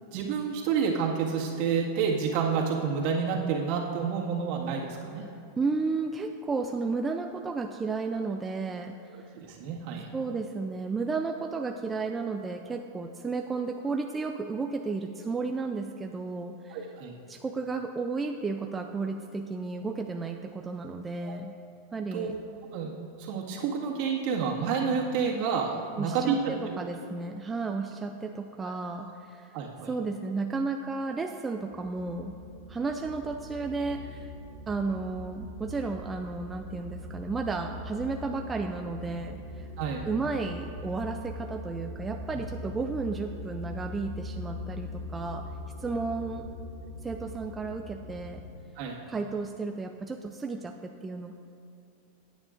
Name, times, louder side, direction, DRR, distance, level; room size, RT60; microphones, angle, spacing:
voice 1, 0.1-5.2 9.4-10.1 16.7-17.1 21.2-21.4 22.1-22.4 22.7-26.8 29.5-29.9 39.8-40.0 48.8-49.0, right 6 dB, 55° right, -2 dB, 1.8 m, -29 dB
voice 2, 5.6-9.1 10.1-16.9 17.3-21.6 21.9-22.3 26.0-29.6 29.8-32.4 32.7-34.3 34.7-39.7 40.1-45.4 45.8-46.4 47.0-48.4 49.1-51.3, right 4 dB, 15° right, 4 dB, 0.4 m, -33 dB
sound 1, 31.7-48.6, left 1 dB, 35° right, 2.3 m, -41 dB
16.5 x 9.0 x 2.5 m, 2.8 s
supercardioid pair, 145°, 0 cm